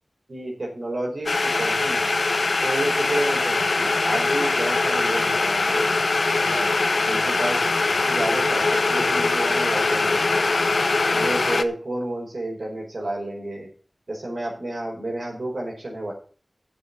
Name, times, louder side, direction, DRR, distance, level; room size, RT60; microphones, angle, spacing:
voice 1, 0.3-2.0 2.6-5.9 6.4-6.7 7.0-10.3 11.1-13.7 14.1-16.1, right 1 dB, 75° right, -1 dB, 5.3 m, -30 dB
sound 1, 1.3-11.6, left 3 dB, 85° left, 0.7 m, -22 dB
7.8 x 7.3 x 8.5 m, 0.39 s
wide cardioid pair, 50°, 0 cm